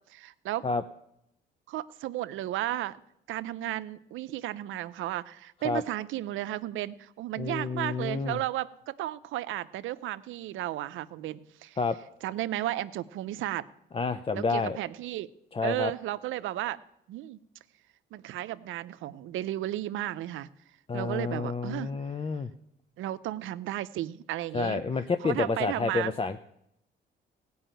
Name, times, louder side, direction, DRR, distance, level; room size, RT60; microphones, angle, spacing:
voice 1, 0.1-0.7 1.7-3.0 3.3-11.8 12.2-13.7 14.3-15.3 15.6-16.8 17.1-17.4 18.1-20.5 20.9-21.9 23.0-24.8 25.2-26.1, right 14 dB, 85° right, 15 dB, 0.6 m, -34 dB
voice 2, 7.4-8.4 11.8-12.0 13.9-14.8 15.5-15.9 20.9-22.5 24.5-26.4, left 4 dB, 30° left, 9 dB, 0.6 m, -29 dB
16.5 x 5.5 x 9.0 m, 0.79 s
cardioid pair, 90°, 20 cm